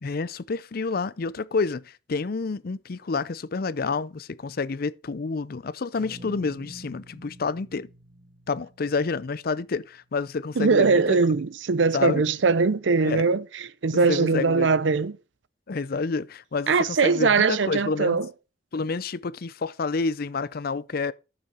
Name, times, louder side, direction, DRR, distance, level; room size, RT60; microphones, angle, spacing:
voice 1, 0.0-7.9 8.5-11.2 11.9-12.2 13.0-13.2 14.1-14.7 15.7-18.2 18.7-21.1, left 4 dB, 55° left, 0.5 m, -29 dB
sound 1, 6.0-10.2, right 1 dB, 30° right, 1.7 m, -48 dB
voice 2, 10.6-15.2 16.7-18.3, right 4 dB, 85° right, 0.6 m, -21 dB
13.0 x 6.9 x 4.2 m
head